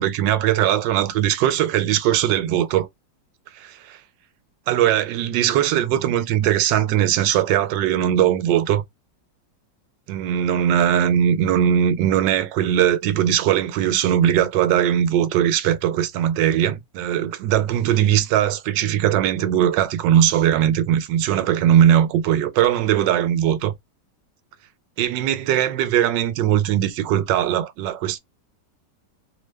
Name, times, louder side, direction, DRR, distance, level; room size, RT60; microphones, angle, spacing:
voice 1, 0.0-2.9 3.5-4.0 4.7-8.8 10.1-23.7 25.0-28.2, right 10 dB, 80° right, 1.2 m, -20 dB
3.2 x 2.1 x 3.2 m
omnidirectional pair, 1.9 m